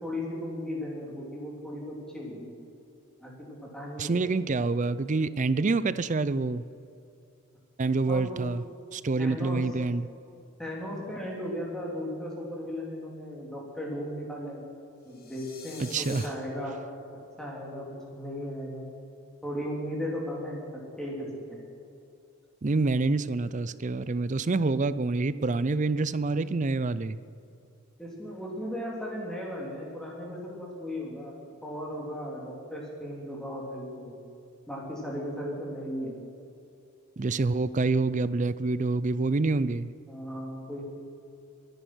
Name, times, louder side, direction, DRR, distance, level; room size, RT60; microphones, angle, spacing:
voice 1, 0.0-2.5 3.2-4.1 8.1-8.5 9.2-9.7 10.6-14.6 15.1-16.8 17.4-18.8 19.4-21.6 28.0-34.2 34.7-36.2 40.1-40.8, equal, 5° left, -3 dB, 3.5 m, -36 dB
voice 2, 4.0-6.6 7.8-8.6 8.9-10.1 15.8-16.2 22.6-27.2 37.2-39.9, right 3 dB, 35° right, 15 dB, 0.5 m, -27 dB
sound 1, 15.1-16.3, left 6 dB, 45° left, 2.0 m, -45 dB
22.5 x 10.0 x 6.3 m, 2.6 s
head